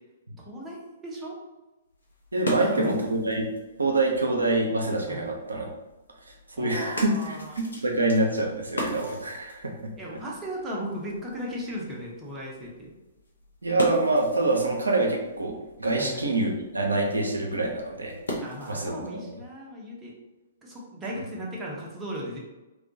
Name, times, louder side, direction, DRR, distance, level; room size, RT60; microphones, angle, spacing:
voice 1, 0.4-1.4 2.6-2.9 5.1-5.2 6.6-7.5 10.0-12.9 16.0-16.2 18.4-20.2 20.6-22.4, equal, 15° right, -4 dB, 0.6 m, -37 dB
sound 1, 1.9-19.0, left 1 dB, 70° left, 0.6 m, -40 dB
voice 2, 2.3-3.5 3.8-5.7 6.6-7.4 7.8-9.9 13.6-18.1 18.7-19.2, right 2 dB, 80° right, 0 dB, 0.4 m, -25 dB
2.2 x 2.1 x 2.6 m, 1.0 s
figure-of-eight pair, 115°, 0 cm